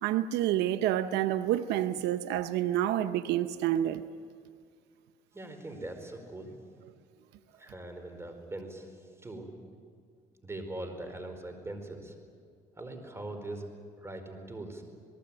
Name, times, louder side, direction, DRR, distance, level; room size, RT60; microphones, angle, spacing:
voice 1, 0.0-4.0, right 12 dB, 85° right, 0.8 m, -28 dB
voice 2, 5.3-6.6 7.6-8.9 9.2-9.5 10.4-12.1 12.8-13.7 14.0-14.8, right 2 dB, 15° right, 4.6 m, -41 dB
28.0 x 18.5 x 8.8 m
cardioid pair, 110°, 17 cm